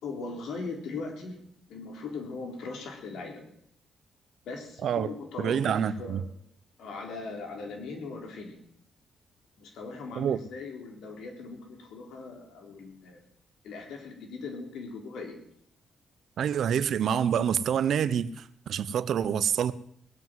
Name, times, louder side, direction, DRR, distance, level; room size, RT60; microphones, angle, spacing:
voice 1, 0.0-1.4 1.7-3.5 4.5-6.2 6.8-8.6 9.6-13.2 13.6-15.4, left 4 dB, 80° left, 3.9 m, -39 dB
voice 2, 5.4-6.2 10.2-10.4 16.4-19.7, right 8 dB, 65° right, 0.8 m, -27 dB
19.0 x 8.0 x 7.6 m
cardioid pair, 105°, 0 cm